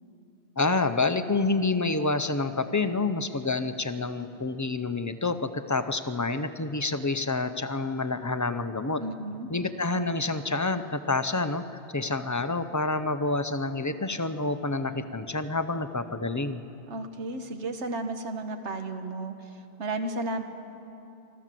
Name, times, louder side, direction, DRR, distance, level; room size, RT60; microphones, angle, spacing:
voice 1, 0.6-9.0 9.5-11.6 11.9-16.6, left 3 dB, 25° left, 10 dB, 0.4 m, -28 dB
voice 2, 9.0-9.5 16.9-20.4, right 2 dB, 90° right, 7 dB, 1.5 m, -33 dB
24.5 x 14.0 x 7.6 m, 2.9 s
omnidirectional pair, 1.1 m